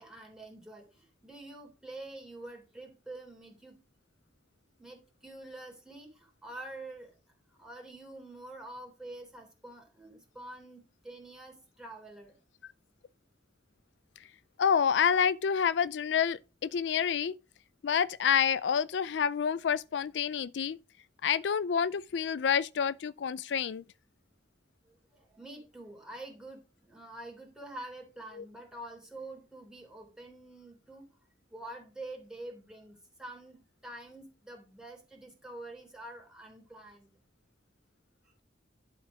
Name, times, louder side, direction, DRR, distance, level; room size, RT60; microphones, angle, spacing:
voice 1, 0.0-3.8 4.8-7.1 7.6-12.3 24.8-31.1 31.5-37.1, right 1 dB, 5° right, 3.3 m, -47 dB
voice 2, 14.6-17.3 17.8-20.8 21.2-23.8 28.4-28.5, left 7 dB, 75° left, 0.4 m, -28 dB
12.0 x 4.5 x 5.0 m
head